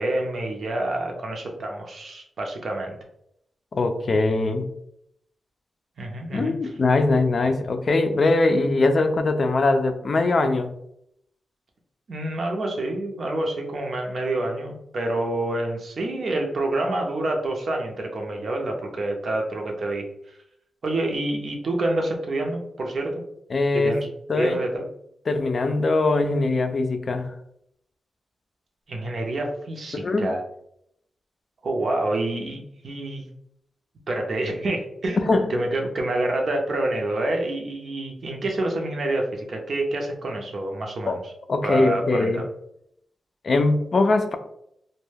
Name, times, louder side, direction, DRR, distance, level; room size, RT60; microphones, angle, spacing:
voice 1, 0.0-3.0 6.0-6.5 12.1-20.1 20.8-23.2 23.7-24.1 24.4-24.9 28.9-30.4 31.6-33.3 34.1-35.2 35.5-41.2 41.6-42.5, right 2 dB, 60° right, 2 dB, 0.6 m, -27 dB
voice 2, 3.7-4.7 6.3-10.7 23.5-24.0 24.3-24.6 25.3-27.3 29.9-30.3 35.3-35.5 41.1-41.2 41.5-42.4 43.4-44.4, left 3 dB, 50° left, 7 dB, 0.3 m, -21 dB
2.1 x 2.1 x 3.2 m, 0.74 s
cardioid pair, 90°, 0 cm